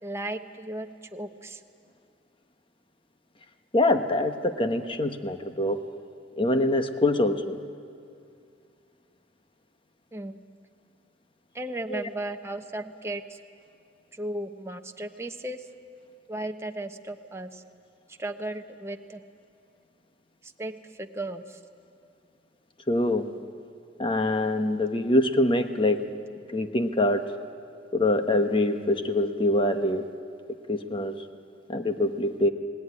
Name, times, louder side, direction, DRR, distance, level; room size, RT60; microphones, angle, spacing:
voice 1, 0.0-1.6 10.1-10.4 11.5-13.4 14.1-15.6 16.3-17.6 18.2-19.2 20.4-21.6, right 1 dB, 15° right, 5 dB, 1.0 m, -35 dB
voice 2, 3.7-5.8 6.4-7.6 11.9-12.1 22.9-23.3 24.0-26.1 26.5-27.3 27.9-30.1 30.7-31.1 31.7-32.5, left 1 dB, 30° left, 7 dB, 1.2 m, -24 dB
29.5 x 19.0 x 9.8 m, 2.4 s
head